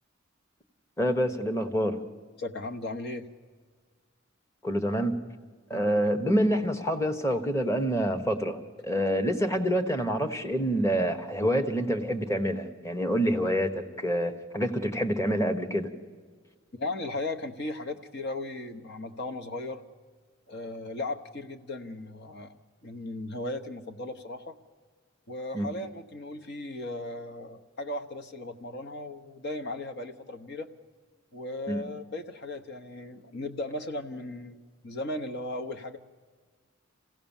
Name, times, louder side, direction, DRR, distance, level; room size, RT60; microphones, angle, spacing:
voice 1, 1.0-2.0 4.6-5.1 5.7-15.9 25.5-25.7 31.7-31.8, equal, 15° left, 7 dB, 1.2 m, -27 dB
voice 2, 2.4-3.3 5.7-6.2 16.7-19.8 20.5-22.6 22.8-24.5 25.3-30.7 31.3-34.6 34.8-36.0, left 2 dB, 60° left, 5 dB, 1.1 m, -36 dB
27.5 x 16.5 x 7.3 m, 1.6 s
head